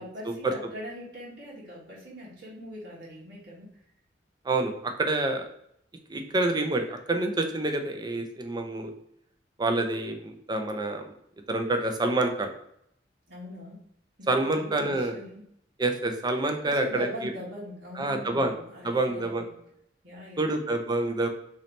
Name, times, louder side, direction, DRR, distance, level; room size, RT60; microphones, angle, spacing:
voice 1, 0.0-3.7 6.3-6.4 13.3-13.8 14.2-15.5 16.6-19.5 20.0-20.7, left 1 dB, 80° right, -6 dB, 1.5 m, -41 dB
voice 2, 4.4-5.5 6.1-8.9 9.6-11.1 11.5-12.5 14.3-15.2 15.8-17.1 18.0-18.5 18.8-19.4 20.4-21.3, right 2 dB, 25° right, 4 dB, 0.5 m, -27 dB
3.2 x 2.8 x 4.0 m, 0.71 s
head